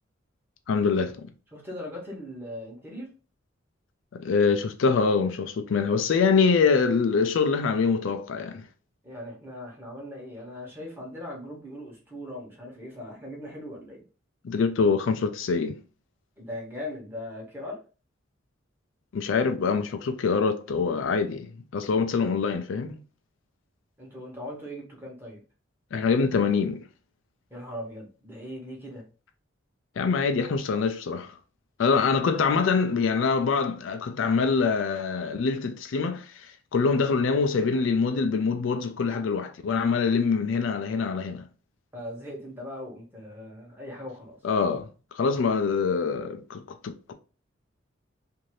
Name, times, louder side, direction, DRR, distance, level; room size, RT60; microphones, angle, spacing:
voice 1, 0.7-1.1 4.1-8.6 14.4-15.8 19.1-23.0 25.9-26.8 30.0-31.3 31.8-41.5 44.4-44.9 45.1-47.1, left 5 dB, 70° left, 0.4 m, -24 dB
voice 2, 1.5-3.1 9.0-14.0 16.4-17.8 24.0-25.4 27.5-29.0 41.9-44.4, left 1 dB, 10° right, 1.1 m, -39 dB
2.7 x 2.6 x 3.1 m
head